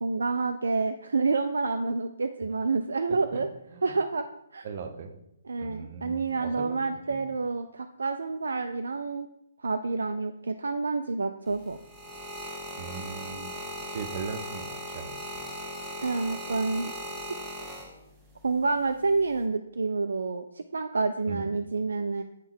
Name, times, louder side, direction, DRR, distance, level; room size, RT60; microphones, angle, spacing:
voice 1, 0.0-3.5 3.8-4.3 4.5-4.6 5.5-9.3 9.6-11.8 16.0-16.9 18.4-22.2, right 4 dB, 65° right, 7 dB, 0.3 m, -28 dB
voice 2, 3.1-3.8 4.6-5.1 5.6-6.8 7.1-7.2 12.8-13.6 13.9-15.6 21.3-21.5, right 5 dB, 40° right, 6 dB, 0.7 m, -39 dB
sound 1, 11.5-18.3 19.1-19.4, equal, 5° right, 1.2 m, -38 dB
8.0 x 3.6 x 4.4 m, 0.82 s
figure-of-eight pair, 130°, 0 cm